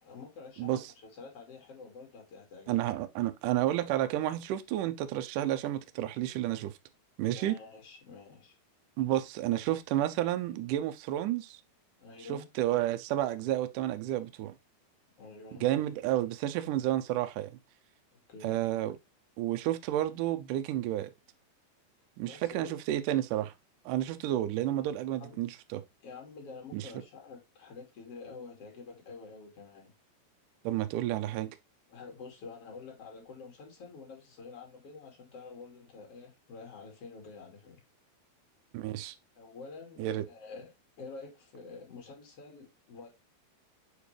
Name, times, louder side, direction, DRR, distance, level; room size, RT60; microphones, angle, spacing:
voice 1, 0.0-2.8 7.3-8.6 12.0-12.5 15.2-15.6 18.1-18.6 22.2-22.8 25.2-25.4 26.0-29.9 31.9-37.8 39.3-40.7 41.0-43.1, left 4 dB, 40° left, 3.0 m, -48 dB
voice 2, 2.7-6.7 7.2-7.6 9.0-11.6 12.3-14.5 15.6-17.5 18.4-19.0 19.4-21.1 22.2-23.5 23.9-25.8 26.7-26.9 30.6-31.5 38.7-39.2 40.0-40.2, right 13 dB, 85° right, 1.8 m, -31 dB
7.4 x 4.6 x 3.3 m
omnidirectional pair, 4.5 m